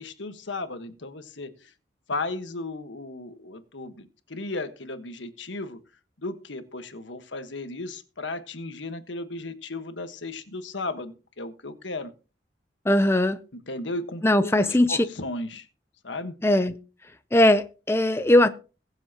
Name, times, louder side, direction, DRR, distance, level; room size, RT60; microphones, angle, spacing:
voice 1, 0.0-1.7 2.1-5.8 6.2-12.1 13.5-15.7 16.0-16.3, left 2 dB, 80° left, 1.4 m, -35 dB
voice 2, 12.9-13.4 14.2-15.0 16.4-16.7 17.3-18.5, left 1 dB, 15° left, 0.5 m, -19 dB
22.0 x 7.4 x 2.9 m
head